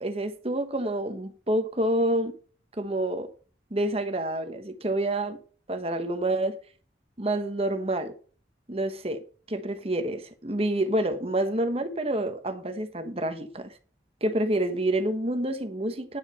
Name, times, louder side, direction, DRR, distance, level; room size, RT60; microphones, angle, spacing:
voice 1, 0.0-2.4 2.8-3.3 3.7-5.4 5.7-6.6 7.2-8.1 8.7-13.7 14.2-16.2, right 1 dB, 30° right, 1.1 m, -28 dB
9.7 x 7.2 x 5.7 m
head